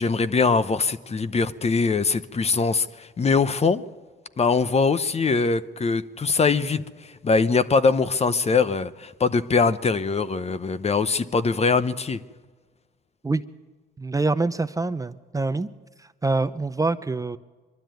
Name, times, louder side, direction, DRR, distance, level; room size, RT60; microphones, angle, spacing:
voice 1, 0.0-3.8 4.4-12.2, left 4 dB, 30° left, 13 dB, 0.9 m, -22 dB
voice 2, 14.0-15.7 16.0-17.4, right 3 dB, 15° right, 12 dB, 0.6 m, -25 dB
23.5 x 12.5 x 9.2 m, 1.4 s
cardioid pair, 90°, 20 cm